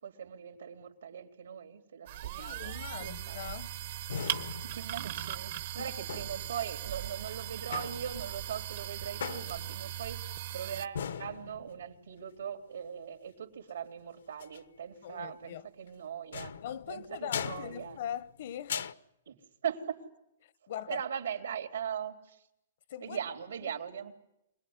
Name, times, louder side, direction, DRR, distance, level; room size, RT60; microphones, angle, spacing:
voice 1, 0.0-3.4 4.5-10.2 10.5-16.6 16.9-18.0 19.3-19.4 19.6-20.0 20.9-22.4 23.0-24.1, right 8 dB, 85° right, 3.5 m, -40 dB
sound 1, 2.1-10.9, right 12 dB, 50° right, 1.0 m, -39 dB
voice 2, 2.4-3.8 5.8-5.9 15.0-15.6 16.6-18.8 20.4-21.0 22.9-23.2 23.6-23.7, left 10 dB, 55° left, 0.9 m, -41 dB
sound 2, 2.9-3.4 4.1-5.4 6.1-6.7 7.7-8.4 9.2-10.0 11.0-12.0 14.3-14.6 16.3-18.4 18.7-18.9, left 7 dB, 80° left, 1.1 m, -40 dB
25.5 x 19.5 x 9.7 m
hypercardioid pair, 150°, 0 cm